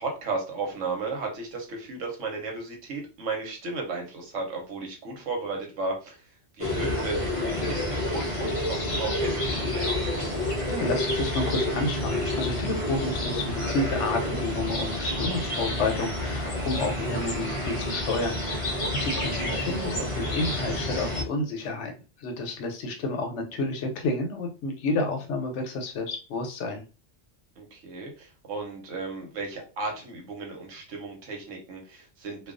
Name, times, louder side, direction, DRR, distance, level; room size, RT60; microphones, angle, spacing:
voice 1, 0.0-10.3 19.1-19.5 27.6-32.5, right 3 dB, 85° right, 1 dB, 1.1 m, -35 dB
sound 1, 6.6-21.2, left 1 dB, 50° left, 0.4 m, -29 dB
voice 2, 10.7-21.9 22.2-26.8, left 2 dB, 75° left, 4 dB, 0.9 m, -30 dB
2.3 x 2.3 x 2.4 m, 0.33 s
omnidirectional pair, 1.3 m